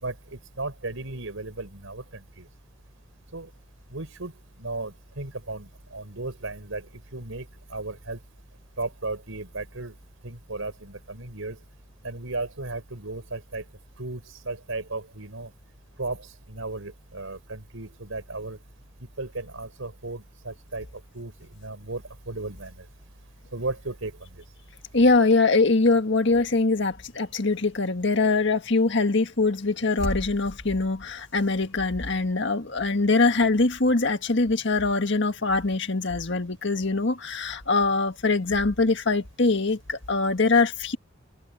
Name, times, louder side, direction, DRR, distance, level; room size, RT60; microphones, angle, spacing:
voice 1, 0.0-2.5 3.3-3.5 3.9-4.3 4.6-6.9 7.1-8.2 8.8-9.9 10.2-11.6 12.0-13.6 14.0-15.5 16.0-18.6 19.2-20.9 21.1-22.8 23.5-24.4, right 2 dB, 90° right, 4.2 m, -35 dB
voice 2, 24.9-41.0, left 3 dB, 60° left, 1.7 m, -23 dB
head